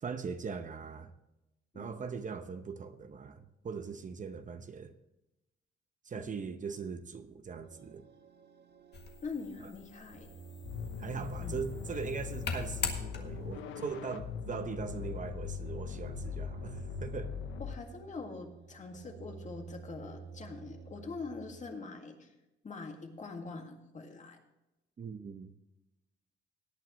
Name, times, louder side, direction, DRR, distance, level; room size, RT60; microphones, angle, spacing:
voice 1, 0.0-1.1 1.7-4.9 6.0-8.0 11.0-17.3 25.0-25.5, right 5 dB, 40° right, 0.8 m, -40 dB
sound 1, 7.6-21.7, right 6 dB, 55° right, 1.1 m, -52 dB
sound 2, 8.9-13.6, left 5 dB, 60° left, 1.7 m, -42 dB
voice 2, 9.2-10.3 11.4-11.5 13.7-13.8 17.6-22.3 22.6-24.4, left 4 dB, 40° left, 2.0 m, -44 dB
sound 3, 10.6-17.7, left 7 dB, 85° left, 0.9 m, -40 dB
18.0 x 9.1 x 3.1 m
cardioid pair, 90°, 20 cm